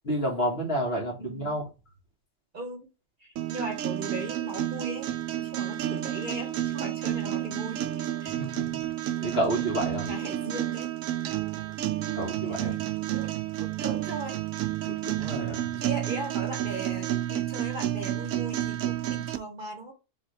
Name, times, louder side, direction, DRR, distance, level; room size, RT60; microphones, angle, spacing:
voice 1, 0.0-1.7 8.4-8.8 9.2-10.1 12.1-12.8 14.9-15.7, right 1 dB, 50° left, 0 dB, 1.9 m, -30 dB
voice 2, 1.2-1.5 2.5-2.9 3.2-7.8 8.2-8.4 10.0-10.9 12.4-12.8 13.1-14.4 14.9-15.0 15.8-19.9, right 2 dB, 40° right, 3 dB, 1.1 m, -38 dB
sound 1, 3.4-19.4, right 12 dB, 80° right, 0.9 m, -31 dB
4.2 x 3.5 x 3.3 m, 0.29 s
omnidirectional pair, 1.4 m